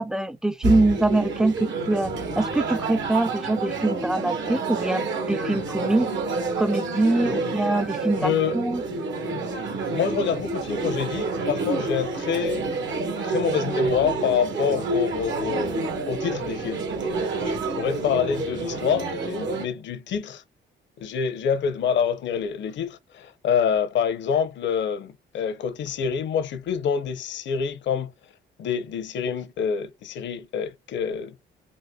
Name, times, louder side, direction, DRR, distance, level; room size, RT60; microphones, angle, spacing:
voice 1, 0.0-6.1 6.6-8.8, right 2 dB, 5° right, 0.4 m, -24 dB
sound 1, 0.6-19.7, right 3 dB, 70° right, 1.2 m, -28 dB
voice 2, 8.2-8.6 9.3-12.7 13.2-16.9 17.4-20.4 21.0-28.1 28.6-31.3, left 7 dB, 65° left, 0.7 m, -27 dB
4.1 x 2.9 x 2.2 m
cardioid pair, 90°, 20 cm